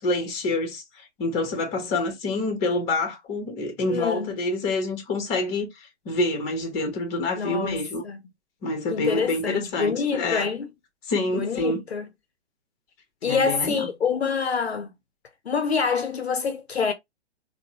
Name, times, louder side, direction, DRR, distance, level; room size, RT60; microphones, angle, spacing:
voice 1, 0.0-8.0 8.6-10.5 11.1-11.8 13.2-13.9, left 2 dB, 20° left, 1.1 m, -27 dB
voice 2, 3.9-4.4 7.3-8.2 8.9-10.7 11.3-12.1 13.2-14.9 15.5-16.9, left 5 dB, 65° left, 0.7 m, -26 dB
3.6 x 2.2 x 2.9 m
figure-of-eight pair, 120°, 35 cm